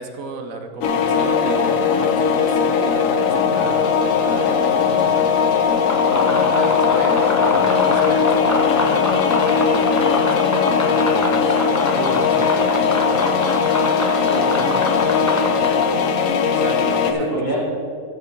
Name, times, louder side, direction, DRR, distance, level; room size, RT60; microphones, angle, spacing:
voice 1, 0.0-5.3 6.0-11.6 11.9-13.7 16.5-17.3 17.6-17.7, right 3 dB, 60° right, 5 dB, 1.3 m, -34 dB
sound 1, 0.8-17.1, left 6 dB, 65° left, 1.0 m, -19 dB
sound 2, 5.7-16.0, left 2 dB, 30° left, 0.3 m, -26 dB
voice 2, 14.2-15.7 16.0-16.1 17.0-17.7, equal, 15° left, -6 dB, 2.7 m, -28 dB
13.0 x 7.0 x 3.9 m, 2.4 s
omnidirectional pair, 1.6 m